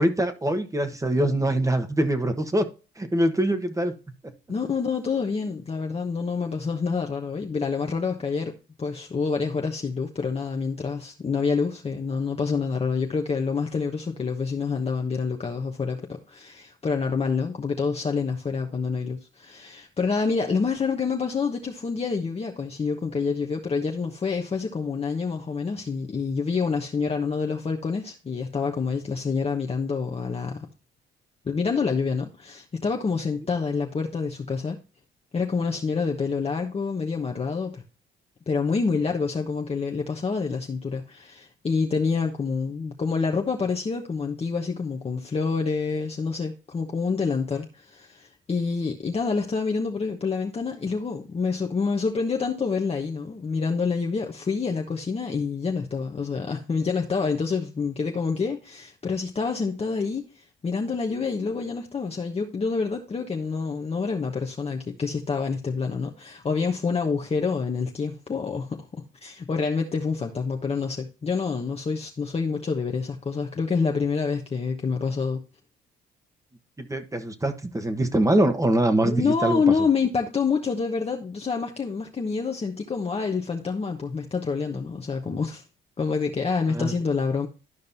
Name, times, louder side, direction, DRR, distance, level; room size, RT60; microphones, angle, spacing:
voice 1, 0.0-2.7 3.0-3.9 76.8-79.6 86.7-86.9, right 1 dB, 15° right, 1.3 m, -23 dB
voice 2, 4.5-30.7 31.4-34.8 35.3-37.8 38.5-75.4 79.0-85.6 86.0-87.5, left 5 dB, 30° left, 1.1 m, -27 dB
12.5 x 5.2 x 2.7 m
cardioid pair, 90°, 20 cm